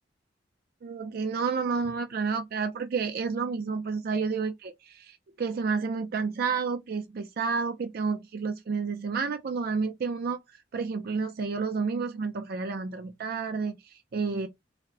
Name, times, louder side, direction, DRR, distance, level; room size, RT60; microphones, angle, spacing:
voice 1, 0.8-10.4 10.7-14.5, right 5 dB, 55° right, 0.4 m, -30 dB
4.1 x 2.0 x 2.6 m
head